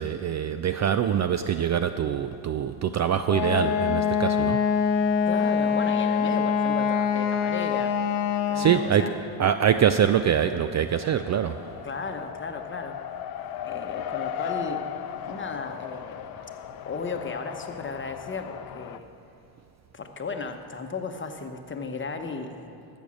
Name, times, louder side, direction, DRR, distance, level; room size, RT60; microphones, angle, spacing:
voice 1, 0.0-4.6 8.5-11.9 16.4-16.5, right 9 dB, 35° right, 10 dB, 0.4 m, -24 dB
Wind instrument woodwind instrument, 3.3-9.0, left 7 dB, 80° left, 0.9 m, -24 dB
voice 2, 5.3-8.0 8.5-9.1 11.8-13.0 13.6-14.9 15.2-16.2 16.9-19.0 19.9-22.8, left 4 dB, 25° left, 5 dB, 1.1 m, -35 dB
Race car auto racing, 10.8-19.0, left 9 dB, 50° left, 0.7 m, -37 dB
13.5 x 7.2 x 6.3 m, 2.6 s
supercardioid pair, 75°, 48 cm